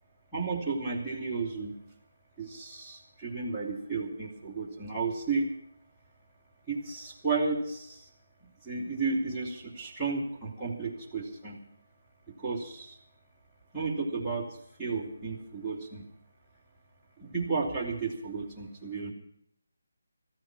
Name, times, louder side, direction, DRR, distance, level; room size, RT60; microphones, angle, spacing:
voice 1, 0.3-1.7 2.4-5.5 6.7-8.1 8.6-11.6 12.3-13.0 13.7-16.1 17.2-19.1, right 4 dB, ahead, -9 dB, 2.9 m, -33 dB
15.0 x 13.5 x 6.2 m, 0.68 s
figure-of-eight pair, 165°, 0 cm